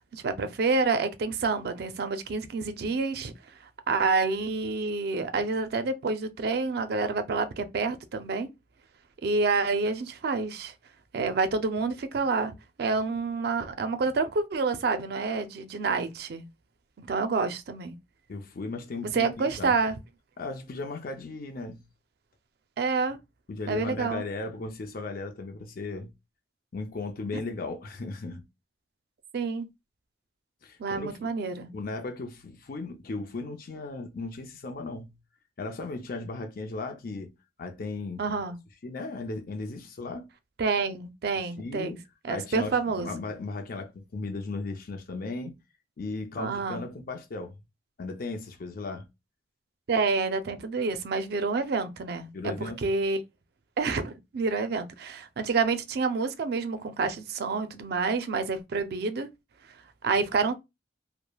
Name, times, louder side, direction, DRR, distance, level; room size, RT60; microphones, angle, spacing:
voice 1, 0.1-3.3 3.9-8.5 9.2-10.7 11.1-16.4 17.0-18.0 19.1-20.0 22.8-23.2 23.7-24.2 27.3-27.4 29.3-29.7 30.8-31.7 38.2-38.6 40.6-42.0 42.2-43.2 46.4-46.8 49.9-53.2 53.8-59.3 60.0-60.5, right 4 dB, 60° right, 0.4 m, -28 dB
voice 2, 18.3-19.7 20.4-21.8 23.5-26.1 26.7-28.4 30.6-31.2 31.7-35.2 35.6-37.3 37.6-38.2 38.8-40.3 41.6-42.0 42.3-45.6 46.0-47.6 48.0-49.1 52.3-52.9, left 3 dB, 55° left, 0.5 m, -36 dB
3.2 x 2.0 x 2.2 m
head